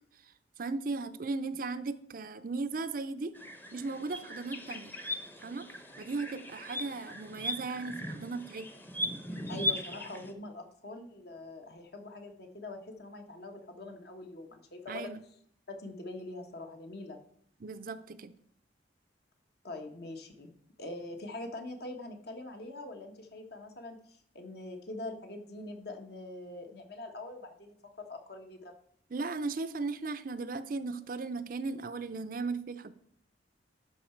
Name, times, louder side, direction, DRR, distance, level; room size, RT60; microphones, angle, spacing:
voice 1, 0.6-3.4 3.7-4.9 5.4-8.7 14.9-15.2 17.6-18.3 29.1-32.9, right 3 dB, 50° right, 11 dB, 0.5 m, -37 dB
sound 1, 3.3-10.3, left 1 dB, 10° left, 0.8 m, -38 dB
voice 2, 9.5-15.1 15.7-17.2 19.6-20.5 20.8-28.7, left 2 dB, 55° left, 5 dB, 1.3 m, -43 dB
12.0 x 4.8 x 4.5 m, 0.67 s
head